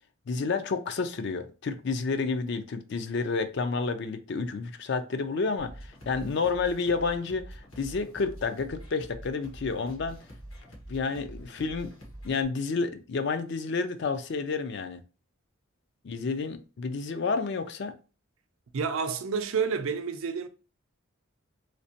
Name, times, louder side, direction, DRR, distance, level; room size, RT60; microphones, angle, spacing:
voice 1, 0.3-10.2 10.9-11.9 12.2-15.0 16.0-17.9, left 4 dB, 55° left, 0.4 m, -30 dB
sound 1, 5.6-12.4, right 1 dB, 75° left, 1.3 m, -46 dB
voice 2, 18.7-20.5, right 5 dB, 75° right, 0.5 m, -29 dB
3.2 x 2.8 x 2.8 m
head